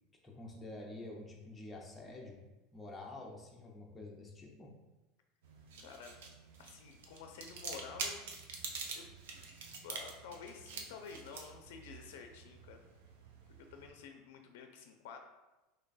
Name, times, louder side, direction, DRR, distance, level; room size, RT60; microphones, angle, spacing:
voice 1, 0.2-2.4 2.7-4.7, left 2 dB, 10° left, -2 dB, 0.6 m, -48 dB
sound 1, 5.4-13.9, right 4 dB, 90° right, 0.5 m, -47 dB
voice 2, 5.8-6.2 6.6-8.2 8.9-9.1 9.8-12.8 13.5-15.2, left 6 dB, 75° left, 4 dB, 0.4 m, -50 dB
3.2 x 2.2 x 4.0 m, 1.1 s
supercardioid pair, 155°, 0 cm